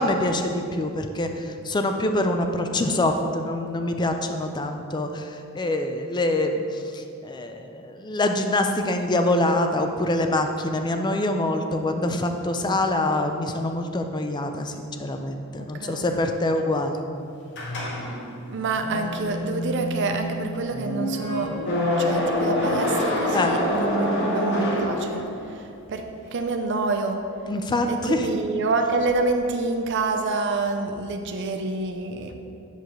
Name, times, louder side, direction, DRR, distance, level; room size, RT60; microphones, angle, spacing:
voice 1, 0.0-17.0 23.3-23.5 27.5-28.3, left 1 dB, 20° left, 5 dB, 0.4 m, -25 dB
sound 1, 17.5-25.6, left 1 dB, 55° left, 1.0 m, -26 dB
voice 2, 18.5-21.5 22.0-27.2 27.9-32.4, right 3 dB, 55° right, 5 dB, 0.4 m, -27 dB
8.1 x 6.4 x 3.0 m, 2.6 s
head